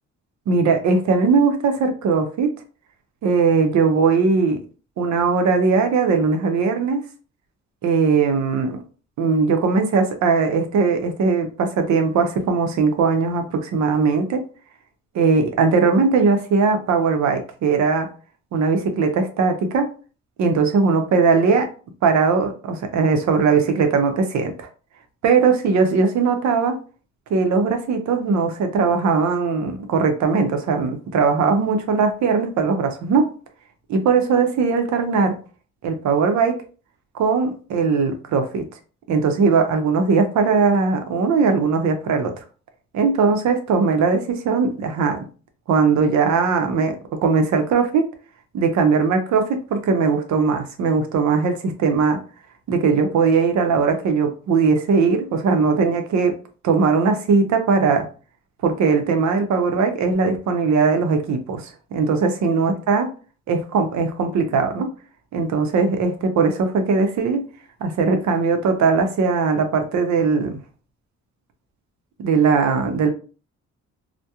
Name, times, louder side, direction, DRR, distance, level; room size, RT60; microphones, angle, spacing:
voice 1, 0.5-2.5 3.2-4.6 5.0-7.0 7.8-8.8 9.2-14.4 15.1-18.1 18.5-19.9 20.4-21.7 22.0-24.7 25.2-26.8 27.3-33.3 33.9-35.4 35.8-36.6 37.1-38.6 39.1-42.3 42.9-45.2 45.7-47.0 47.2-48.1 48.5-52.2 52.7-56.3 56.6-58.1 58.6-63.1 63.5-64.9 65.3-67.4 67.8-70.6 72.2-73.1, right 5 dB, 70° right, 6 dB, 0.6 m, -19 dB
2.3 x 2.1 x 2.8 m, 0.37 s
cardioid pair, 75°, 30 cm